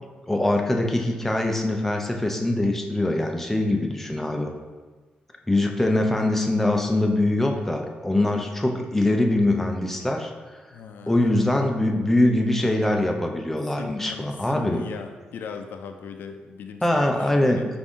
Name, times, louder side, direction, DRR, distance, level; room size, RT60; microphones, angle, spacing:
voice 1, 0.3-4.5 5.5-10.3 11.1-14.8 16.8-17.6, left 1 dB, 10° left, 2 dB, 0.5 m, -23 dB
voice 2, 10.7-11.6 13.7-17.7, left 6 dB, 80° left, 6 dB, 0.4 m, -39 dB
5.2 x 2.6 x 3.6 m, 1.3 s
cardioid pair, 105°, 3 cm